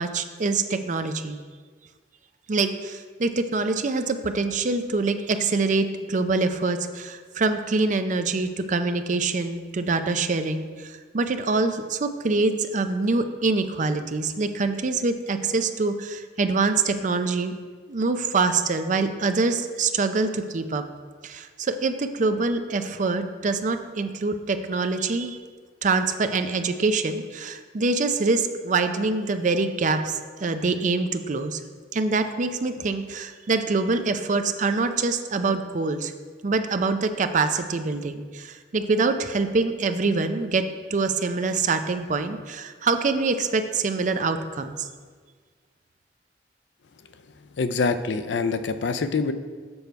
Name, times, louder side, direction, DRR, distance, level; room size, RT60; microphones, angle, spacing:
voice 1, 0.0-1.4 2.5-17.5 17.9-20.8 21.2-25.4 25.8-30.1 30.4-31.6 31.9-36.1 36.4-44.9, right 3 dB, 45° right, 8 dB, 0.5 m, -25 dB
voice 2, 47.6-49.3, left 4 dB, 85° left, 11 dB, 0.5 m, -25 dB
7.0 x 6.8 x 4.5 m, 1.5 s
head